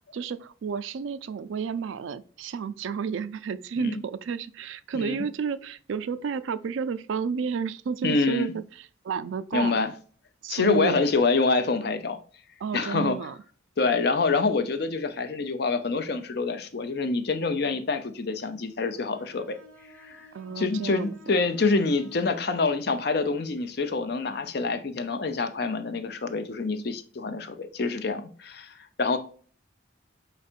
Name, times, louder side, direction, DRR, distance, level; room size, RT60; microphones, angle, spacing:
voice 1, 0.1-9.7 10.4-11.0 12.6-13.4 20.3-21.1, right 6 dB, 70° right, 0.4 m, -31 dB
voice 2, 8.0-8.5 9.5-9.9 10.5-12.2 12.7-13.2 13.8-19.6 20.0-20.3 20.6-29.2, left 4 dB, 50° left, 0.5 m, -26 dB
Bowed string instrument, 18.9-22.7, left 3 dB, 5° left, 1.0 m, -53 dB
4.4 x 4.1 x 2.4 m
head